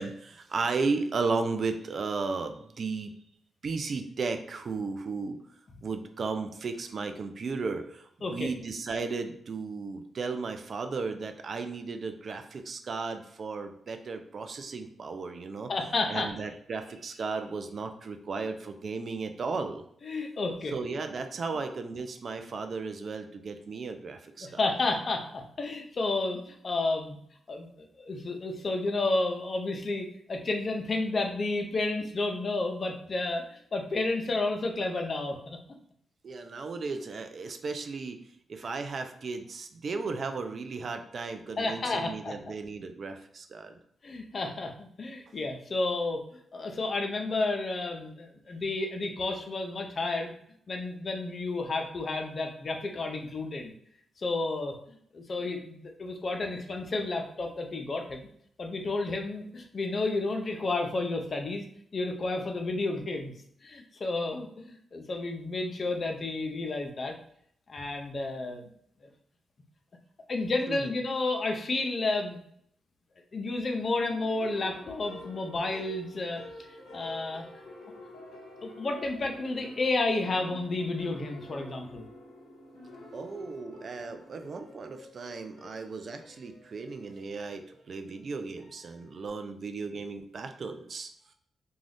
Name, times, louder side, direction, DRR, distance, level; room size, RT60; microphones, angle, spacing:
voice 1, 0.0-3.1 3.6-5.4 5.8-15.7 16.1-19.8 20.7-24.5 36.2-38.2 38.5-43.8 70.7-70.9 83.1-91.1, right 4 dB, 60° right, 7 dB, 0.4 m, -35 dB
voice 2, 15.7-16.3 20.0-20.7 24.4-27.2 27.5-35.6 41.6-42.3 44.0-46.2 46.5-50.3 50.7-53.7 54.2-58.3 58.6-61.6 61.9-63.3 63.6-67.1 67.7-68.6 69.0-69.1 70.3-72.4 73.3-76.4 76.9-77.5 78.6-82.0, left 2 dB, 50° left, 3 dB, 0.6 m, -31 dB
sound 1, 73.7-89.3, left 1 dB, 90° left, 0.7 m, -49 dB
2.6 x 2.3 x 3.4 m, 0.66 s
supercardioid pair, 50°, 0 cm